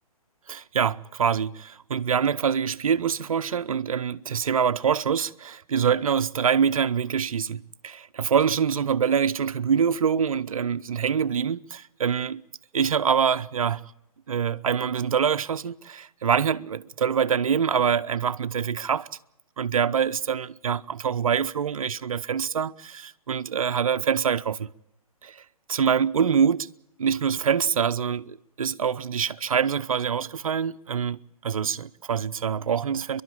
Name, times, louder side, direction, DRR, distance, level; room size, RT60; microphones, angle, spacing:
voice 1, 0.5-12.4 12.7-13.9 14.3-19.1 19.6-24.7 25.2-25.4 25.7-26.7 27.0-33.2, right 7 dB, 65° right, 0.8 m, -25 dB
30.0 x 11.5 x 8.6 m
figure-of-eight pair, 125°, 19 cm